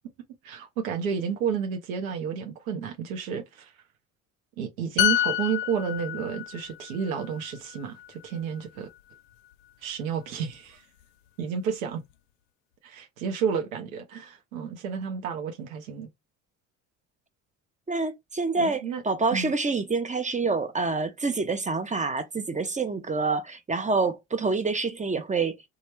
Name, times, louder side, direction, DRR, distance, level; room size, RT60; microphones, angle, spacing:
voice 1, 0.4-3.7 4.6-8.9 9.8-10.8 11.4-12.0 12.8-16.1 18.6-19.0 19.3-19.5, right 7 dB, 90° right, 0.7 m, -31 dB
sound 1, 5.0-8.6 8.9-9.1, left 12 dB, 75° left, 0.5 m, -29 dB
voice 2, 17.9-25.7, right 4 dB, 20° right, 0.6 m, -27 dB
3.1 x 2.3 x 2.9 m
hypercardioid pair, 65°, 40 cm